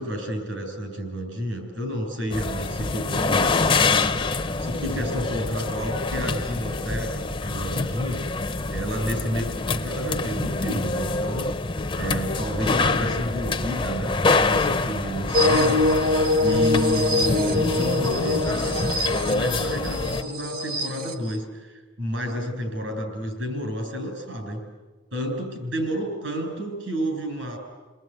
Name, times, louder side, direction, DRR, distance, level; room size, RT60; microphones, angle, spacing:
voice 1, 0.0-4.1 4.6-8.2 8.7-11.5 11.9-15.8 16.4-18.8 19.3-24.6 25.1-27.6, equal, 75° right, 4 dB, 7.6 m, -30 dB
sound 1, 2.3-20.2, left 3 dB, 25° left, 0.8 m, -26 dB
sound 2, 15.3-21.4, left 2 dB, 50° right, 1.4 m, -24 dB
30.0 x 20.0 x 9.6 m, 1.3 s
head